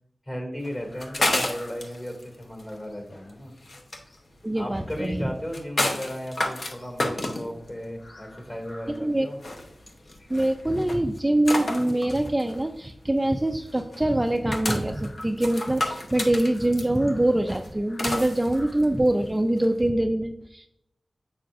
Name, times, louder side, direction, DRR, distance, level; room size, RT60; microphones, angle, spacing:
voice 1, 0.3-3.5 4.5-9.4, equal, 30° left, 1 dB, 2.3 m, -35 dB
sound 1, 0.6-19.8, left 1 dB, 65° left, 0.9 m, -32 dB
voice 2, 4.4-5.3 9.0-9.3 10.3-20.7, right 1 dB, 15° right, 5 dB, 0.4 m, -24 dB
7.7 x 5.9 x 2.5 m, 0.76 s
wide cardioid pair, 90°, 0 cm